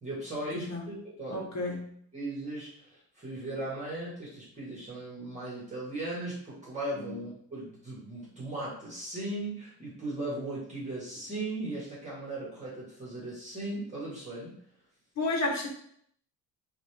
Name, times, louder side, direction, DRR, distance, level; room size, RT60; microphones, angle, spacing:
voice 1, 0.0-1.5 2.1-14.6, right 1 dB, 20° right, -6 dB, 1.6 m, -37 dB
voice 2, 0.5-0.9 1.3-1.8 7.0-7.2 15.2-15.7, left 2 dB, 45° left, 0 dB, 1.2 m, -31 dB
5.2 x 2.6 x 3.3 m, 0.66 s
cardioid pair, 160°, 39 cm